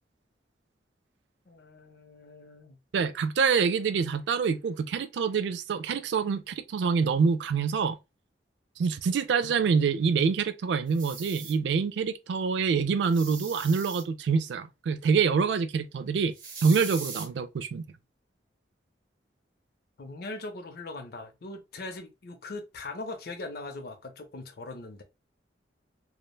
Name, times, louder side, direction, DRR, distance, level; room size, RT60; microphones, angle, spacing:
voice 1, 1.5-2.8 20.0-25.0, left 2 dB, 55° left, 0.5 m, -40 dB
voice 2, 2.9-8.0 8.8-16.3 16.6-17.8, right 5 dB, 70° right, 0.3 m, -26 dB
sound 1, 10.9-11.5 13.0-14.0 16.3-17.3, right 4 dB, 50° right, 0.7 m, -40 dB
3.2 x 2.0 x 2.2 m
head